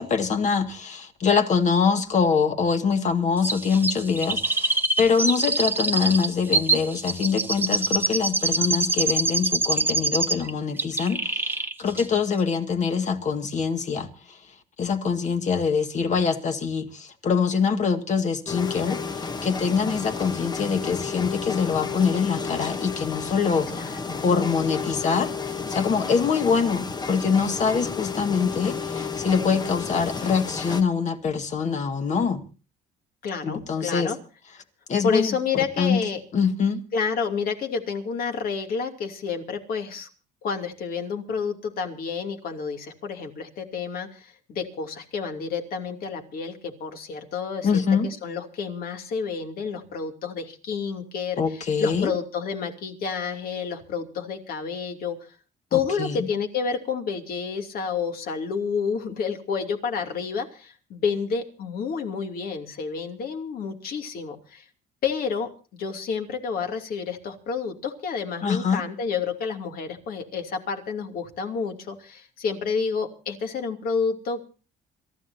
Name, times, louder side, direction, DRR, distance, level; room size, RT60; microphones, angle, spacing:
voice 1, 0.0-14.1 14.8-23.8 24.2-32.4 33.4-34.1 34.9-36.0 36.3-36.8 47.6-48.1 51.4-52.1 55.7-56.3 68.4-68.8, left 5 dB, 45° left, 2.0 m, -24 dB
Chirp tweet, 3.4-10.5 10.8-11.7 12.0-12.1, right 3 dB, 10° right, 1.0 m, -25 dB
sound 1, 18.5-30.8, left 5 dB, 25° left, 1.1 m, -32 dB
voice 2, 23.7-24.3 33.2-34.2 35.0-36.2 36.9-40.1 40.4-55.2 55.7-64.6 65.0-65.5 65.8-74.5, left 5 dB, 60° left, 2.8 m, -29 dB
27.0 x 14.0 x 2.8 m
cardioid pair, 110°, 17 cm